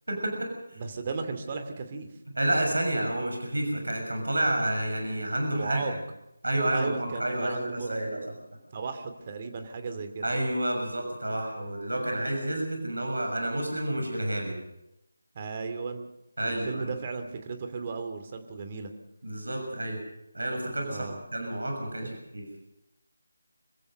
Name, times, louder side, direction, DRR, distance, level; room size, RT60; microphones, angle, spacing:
voice 1, 0.1-0.5 2.4-5.8 6.4-8.2 10.2-14.6 16.4-16.9 19.2-20.0 20.3-21.0 21.3-22.5, right 1 dB, 75° right, 3 dB, 6.5 m, -29 dB
voice 2, 0.7-2.1 5.5-5.9 6.7-8.4 8.7-10.3 15.3-16.1 16.4-18.9 20.9-21.2 22.0-22.1, right 4 dB, 30° right, 7 dB, 2.6 m, -35 dB
26.0 x 15.5 x 6.6 m, 0.85 s
figure-of-eight pair, 160°, 0 cm